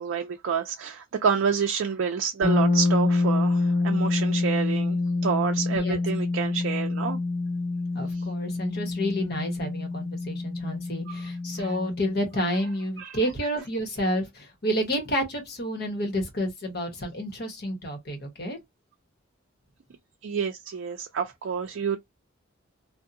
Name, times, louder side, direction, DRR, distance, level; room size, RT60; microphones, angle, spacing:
voice 1, 0.0-5.0 5.2-7.2 8.1-8.3 11.1-11.2 11.6-11.7 13.0-13.2 20.2-22.0, right 6 dB, 70° right, 0.4 m, -28 dB
sound 1, 2.4-12.2, left 3 dB, 5° right, 1.3 m, -26 dB
voice 2, 7.9-18.6, equal, 50° left, 1.0 m, -30 dB
2.6 x 2.1 x 2.6 m
head